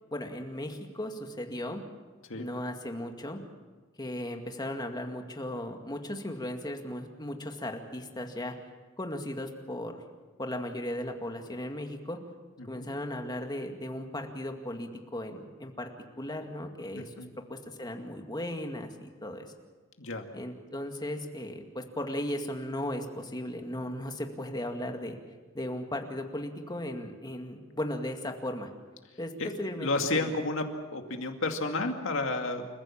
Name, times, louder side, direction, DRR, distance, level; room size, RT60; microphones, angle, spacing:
voice 1, 0.1-1.8 2.4-3.4 4.0-8.5 9.0-10.0 10.4-12.2 12.6-15.9 16.2-17.2 17.5-19.5 20.3-25.2 25.5-28.7 29.2-29.3 29.6-30.3, left 1 dB, 20° left, 4 dB, 2.1 m, -36 dB
voice 2, 16.9-17.3 20.0-20.3 29.4-30.6 30.9-32.7, left 2 dB, 65° left, 4 dB, 2.4 m, -32 dB
29.0 x 15.0 x 7.4 m, 1.3 s
head